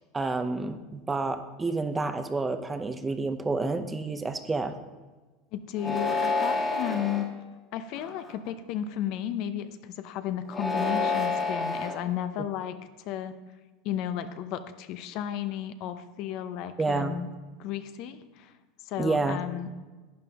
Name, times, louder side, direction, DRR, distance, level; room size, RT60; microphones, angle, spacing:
voice 1, 0.1-4.7 16.8-17.2 19.0-19.4, right 3 dB, 15° right, 9 dB, 0.6 m, -29 dB
voice 2, 5.5-7.3 7.7-13.3 13.8-17.3 17.6-18.5 18.8-19.7, left 10 dB, 55° left, 11 dB, 0.7 m, -33 dB
sound 1, 5.8-7.3 8.0-8.5 10.5-12.0, left 3 dB, 10° left, 1.5 m, -28 dB
11.0 x 9.2 x 3.5 m, 1.3 s
supercardioid pair, 135°, 0 cm